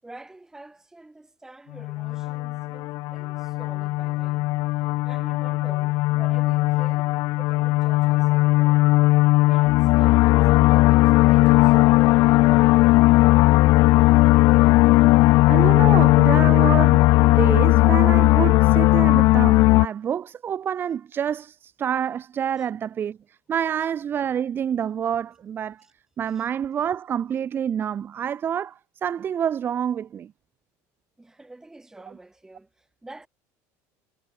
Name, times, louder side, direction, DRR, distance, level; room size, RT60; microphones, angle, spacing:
voice 1, 0.0-4.5 5.0-8.9 9.5-13.9 22.6-22.7 25.8-25.9 26.3-26.5 31.2-33.3, right 2 dB, 5° right, 7.3 m, -47 dB
sound 1, 1.8-19.9, left 20 dB, 50° left, 0.4 m, -17 dB
voice 2, 15.5-25.8 26.2-30.3, right 8 dB, 30° right, 1.0 m, -27 dB
cardioid pair, 150°, 8 cm